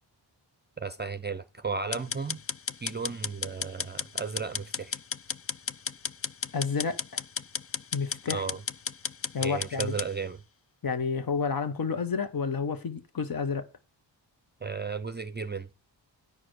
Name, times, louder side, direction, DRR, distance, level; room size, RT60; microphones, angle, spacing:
voice 1, 0.8-2.4 2.8-5.0 8.3-8.6 9.4-10.4 14.6-15.7, right 5 dB, 25° right, 0.6 m, -34 dB
sound 1, 1.9-10.1, left 6 dB, 35° left, 0.4 m, -34 dB
voice 2, 6.5-7.2 7.9-8.4 9.3-9.9 10.8-13.7, left 5 dB, 50° left, 1.3 m, -30 dB
10.0 x 4.8 x 6.3 m
wide cardioid pair, 85°, 44 cm